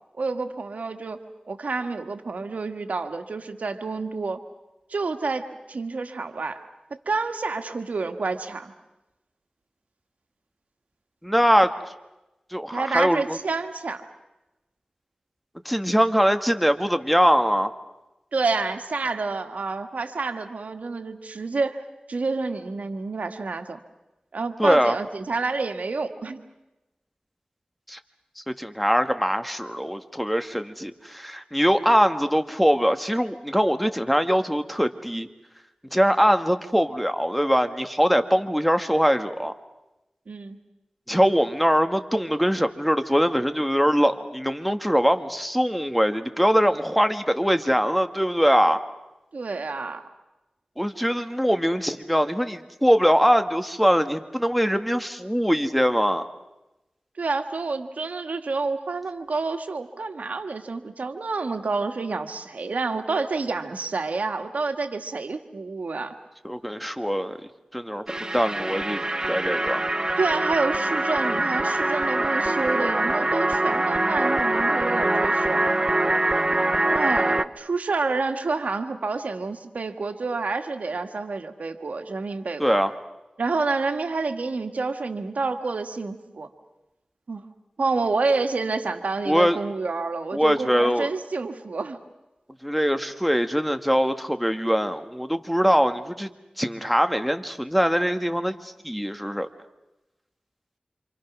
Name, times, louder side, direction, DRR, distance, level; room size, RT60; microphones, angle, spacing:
voice 1, 0.2-1.2 1.5-4.4 4.9-6.6 7.0-8.7 12.7-14.0 18.3-21.8 22.1-23.8 24.3-26.4 40.3-40.6 49.3-50.0 57.2-66.1 70.2-75.7 76.9-82.8 83.4-86.5 87.3-87.4 87.8-92.0, right 3 dB, 90° right, 7 dB, 1.6 m, -28 dB
voice 2, 11.2-11.7 12.5-13.4 15.6-17.7 24.6-24.9 27.9-28.0 28.5-35.3 35.9-39.5 41.1-48.8 50.8-56.3 66.4-67.4 67.7-68.0 68.3-69.8 82.6-82.9 89.2-89.6 90.3-91.1 92.6-96.3 96.6-99.5, equal, ahead, 8 dB, 1.7 m, -22 dB
sound 1, 68.1-77.5, right 2 dB, 30° right, 0.9 m, -24 dB
28.0 x 27.0 x 6.2 m, 0.98 s
wide cardioid pair, 50°, 2 cm